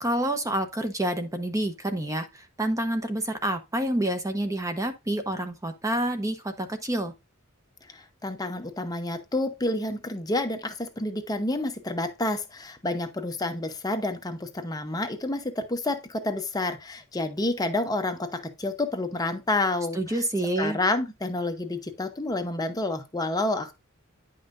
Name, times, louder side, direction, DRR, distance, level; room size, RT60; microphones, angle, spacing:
voice 1, 0.0-7.1 19.9-20.8, right 1 dB, 15° right, 0.8 m, -28 dB
voice 2, 7.9-20.2 20.6-23.7, left 2 dB, 20° left, 0.8 m, -29 dB
10.0 x 5.5 x 2.5 m
head